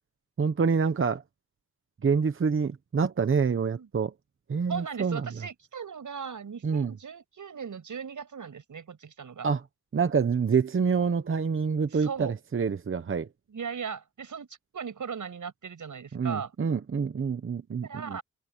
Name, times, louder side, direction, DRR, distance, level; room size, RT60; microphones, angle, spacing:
voice 1, 0.4-1.2 2.0-4.1 4.5-5.3 6.6-6.9 9.4-9.6 9.9-13.3 16.1-18.2, right 5 dB, 45° right, 0.9 m, -27 dB
voice 2, 4.7-9.5 11.9-12.3 13.5-14.5 14.7-16.5 17.8-18.2, right 6 dB, 85° right, 6.3 m, -38 dB
wide cardioid pair, 170°, 30 cm